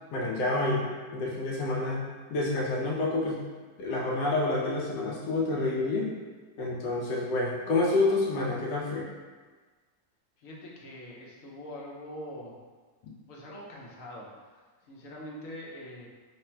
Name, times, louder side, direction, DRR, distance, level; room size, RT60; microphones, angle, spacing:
voice 1, 0.1-0.8 1.1-3.4 3.8-6.1 6.6-9.1, left 2 dB, 75° left, -4 dB, 1.2 m, -28 dB
voice 2, 10.4-12.5 13.3-16.1, left 1 dB, 60° left, -3 dB, 0.9 m, -43 dB
3.2 x 2.5 x 4.3 m, 1.4 s
omnidirectional pair, 1.9 m